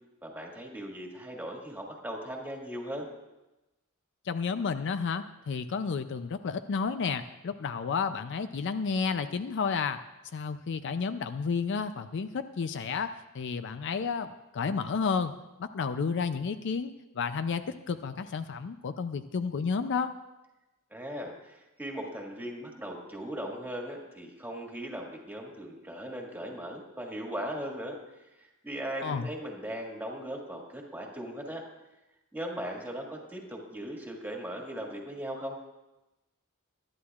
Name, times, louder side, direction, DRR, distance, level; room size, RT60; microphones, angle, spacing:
voice 1, 0.2-3.1 20.9-28.0 28.4-31.6 32.3-35.6, equal, 10° right, 0 dB, 1.8 m, -38 dB
voice 2, 4.3-10.0 10.3-14.3 14.5-15.3 15.6-20.1 29.0-29.3, left 5 dB, 60° left, 11 dB, 0.4 m, -31 dB
21.0 x 11.5 x 2.4 m, 1.0 s
head